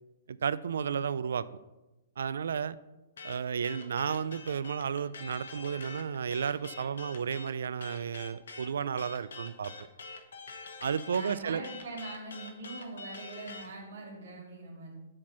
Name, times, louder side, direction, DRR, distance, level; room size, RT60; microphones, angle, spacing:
voice 1, 0.3-1.5 2.2-2.8 3.2-9.9 10.8-11.6, right 7 dB, 80° right, 0.3 m, -33 dB
sound 1, 3.2-13.7, left 4 dB, 80° left, 1.1 m, -45 dB
voice 2, 11.1-14.9, right 2 dB, 60° right, 2.9 m, -43 dB
7.3 x 4.5 x 5.5 m
hypercardioid pair, 160°, 0 cm